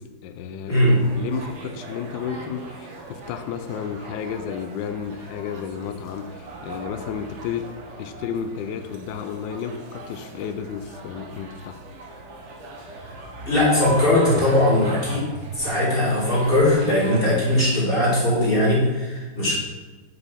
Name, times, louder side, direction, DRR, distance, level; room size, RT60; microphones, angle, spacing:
voice 1, 0.0-0.9 1.1-7.7 8.0-11.8, left 7 dB, 75° left, 8 dB, 1.0 m, -32 dB
voice 2, 0.7-1.0 13.5-15.3 15.5-19.6, left 1 dB, 25° left, -6 dB, 2.2 m, -19 dB
sound 1, 0.9-18.1, right 2 dB, 50° right, 0.8 m, -39 dB
6.4 x 5.0 x 5.5 m, 1.3 s
omnidirectional pair, 2.4 m